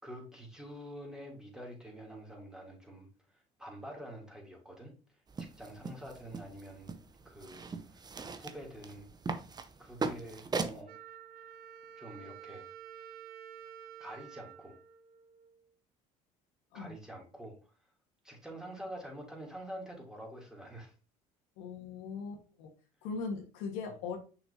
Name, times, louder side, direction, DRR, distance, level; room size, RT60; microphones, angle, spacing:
voice 1, 0.0-3.1 3.6-4.9 5.4-7.0 7.2-8.0 8.3-9.1 9.8-11.0 12.0-12.7 14.0-14.8 16.7-17.6 18.2-20.9 23.9-24.0, equal, 5° right, -1 dB, 3.1 m, -47 dB
sound 1, 5.3-10.8, right 4 dB, 25° right, 0.9 m, -40 dB
Wind instrument woodwind instrument, 10.9-15.7, right 9 dB, 65° right, 0.7 m, -50 dB
voice 2, 21.6-22.7 23.0-24.2, left 5 dB, 85° left, 2 dB, 1.7 m, -39 dB
6.7 x 5.9 x 2.9 m, 0.34 s
supercardioid pair, 90°, 16 cm